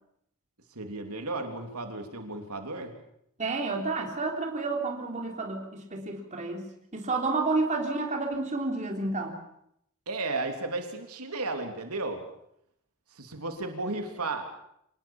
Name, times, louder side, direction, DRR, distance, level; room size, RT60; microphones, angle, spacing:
voice 1, 0.7-2.9 10.1-12.2 13.1-14.4, right 2 dB, 90° right, 5 dB, 3.2 m, -34 dB
voice 2, 3.4-9.4, right 3 dB, 35° right, 2 dB, 3.5 m, -30 dB
26.0 x 19.5 x 7.2 m, 0.74 s
head